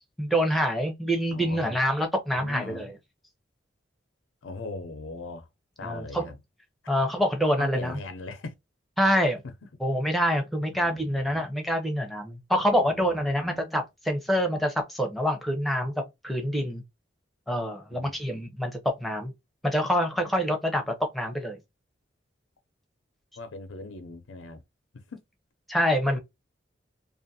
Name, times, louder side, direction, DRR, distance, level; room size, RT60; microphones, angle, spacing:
voice 1, 0.2-2.9 5.8-6.3 6.9-8.0 9.0-9.4 9.8-15.9 16.2-16.8 17.5-19.3 19.6-21.6 25.7-26.2, equal, ahead, 0.6 m, -26 dB
voice 2, 1.3-1.8 2.3-2.8 4.4-5.5 5.8-6.4 7.6-8.5 9.4-9.5 10.7-11.4 12.5-13.0 13.3-13.6 17.9-18.1 23.4-24.6 24.9-25.2 26.1-26.2, left 3 dB, 90° left, 0.5 m, -40 dB
2.6 x 2.4 x 2.6 m
head